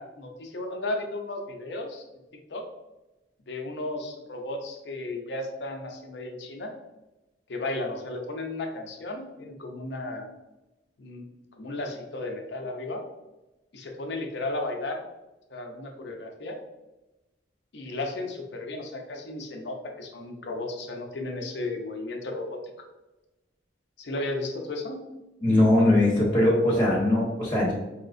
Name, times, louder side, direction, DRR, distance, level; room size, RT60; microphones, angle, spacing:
voice 1, 0.0-2.1 2.5-2.7 3.5-6.7 7.5-10.3 11.0-11.2 11.5-13.0 13.7-15.0 15.5-16.6 17.7-22.6 24.0-25.0, left 2 dB, 70° left, 3 dB, 0.6 m, -34 dB
voice 2, 25.4-27.7, left 1 dB, 10° left, -6 dB, 1.1 m, -21 dB
4.9 x 2.9 x 2.5 m, 1.0 s
head